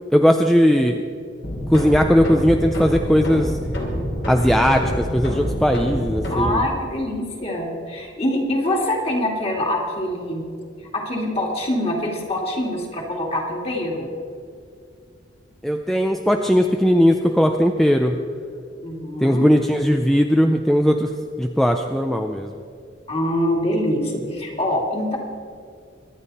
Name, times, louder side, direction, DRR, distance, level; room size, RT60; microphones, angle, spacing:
voice 1, 0.1-1.0 1.7-3.6 4.3-6.6 15.6-18.2 19.2-21.1 21.4-22.5, equal, ahead, 4 dB, 0.5 m, -18 dB
sound 1, 1.4-6.5, equal, 65° left, 3.1 m, -26 dB
voice 2, 6.3-10.4 10.9-14.1 18.8-19.5 23.1-25.2, left 1 dB, 30° left, 0 dB, 2.5 m, -24 dB
24.0 x 10.0 x 4.2 m, 2.3 s
head